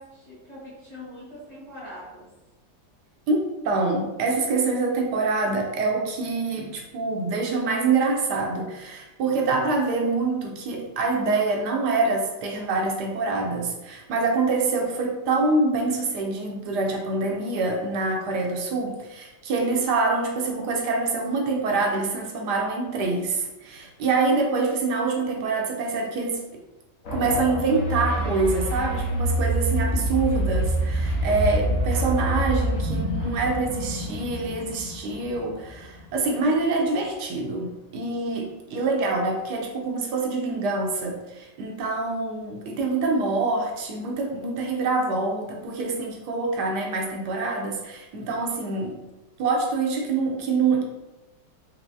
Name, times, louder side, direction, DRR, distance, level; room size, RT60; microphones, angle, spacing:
voice 1, 0.0-2.3, left 1 dB, 25° left, -10 dB, 1.4 m, -42 dB
voice 2, 3.3-26.4 27.1-49.0 49.4-50.8, right 3 dB, 80° right, 1 dB, 1.2 m, -25 dB
sound 1, 27.0-36.2, right 1 dB, 55° left, 1.2 m, -26 dB
4.6 x 3.0 x 2.6 m, 1.0 s
omnidirectional pair, 1.8 m